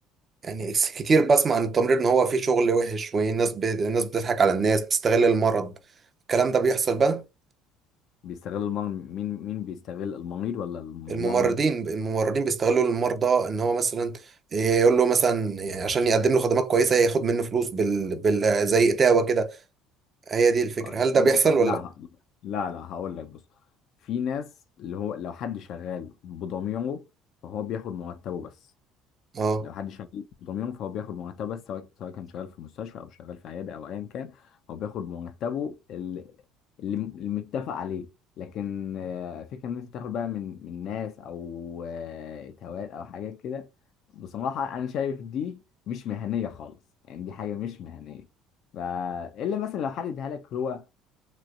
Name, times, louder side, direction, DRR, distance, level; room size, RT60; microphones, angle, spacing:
voice 1, 0.4-5.7 6.3-7.2 11.1-14.2 14.5-19.6 20.3-21.8 29.3-29.7, right 4 dB, 35° right, 0.7 m, -22 dB
voice 2, 8.2-11.6 20.8-22.1 22.4-23.4 24.0-24.5 24.8-27.0 27.4-28.5 29.6-34.4 34.7-36.3 36.8-38.1 38.4-43.7 44.1-46.8 47.1-48.3 48.7-50.8, left 8 dB, 60° left, 0.6 m, -33 dB
3.1 x 3.1 x 2.5 m
supercardioid pair, 95°, 0 cm